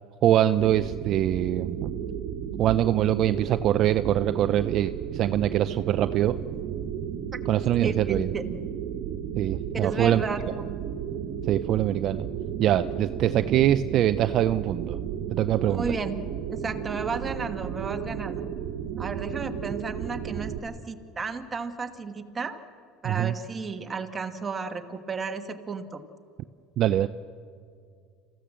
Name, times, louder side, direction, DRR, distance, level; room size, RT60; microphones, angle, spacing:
voice 1, 0.2-1.9 2.6-6.4 7.5-8.3 9.3-10.2 11.5-12.3 12.6-15.0 15.3-15.9 23.0-23.3 26.8-27.1, right 12 dB, 50° right, 11 dB, 0.5 m, -23 dB
sound 1, 0.6-20.6, right 8 dB, 70° right, 1.4 m, -33 dB
voice 2, 7.8-8.5 9.7-10.7 13.3-13.6 15.7-16.2 16.5-18.5 19.0-22.6 23.0-26.0, right 4 dB, 20° right, 6 dB, 1.5 m, -33 dB
27.5 x 15.5 x 7.6 m, 2.3 s
supercardioid pair, 120°, 0 cm